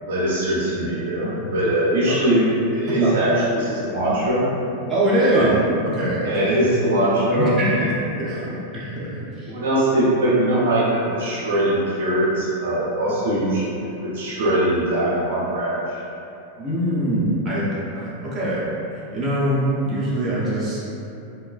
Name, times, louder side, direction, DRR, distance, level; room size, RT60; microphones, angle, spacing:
voice 1, 0.0-4.5 5.3-5.6 6.2-7.8 9.5-16.0, right 1 dB, 60° right, -7 dB, 0.5 m, -21 dB
voice 2, 2.9-3.2 4.9-5.5 5.8-6.5 7.3-9.5 16.6-18.7 19.1-20.8, right 1 dB, 20° right, -8 dB, 0.6 m, -23 dB
3.0 x 2.2 x 2.3 m, 2.8 s
figure-of-eight pair, 90°, 0 cm